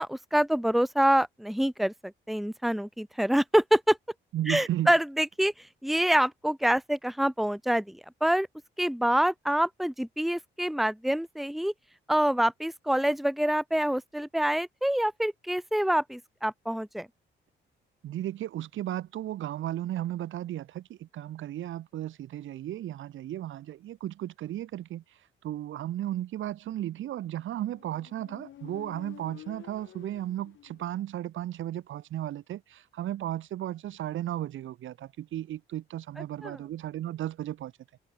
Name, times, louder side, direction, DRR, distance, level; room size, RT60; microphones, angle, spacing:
voice 1, 0.0-4.0 4.5-8.5 8.8-11.7 12.1-17.1 36.4-36.6, right 1 dB, ahead, 1.7 m, -26 dB
voice 2, 4.3-4.9 18.0-25.0 25.4-37.7, right 12 dB, 80° right, 5.0 m, -35 dB
Motorcycle, 27.5-31.1, left 12 dB, 75° left, 4.6 m, -50 dB
cardioid pair, 90°, 20 cm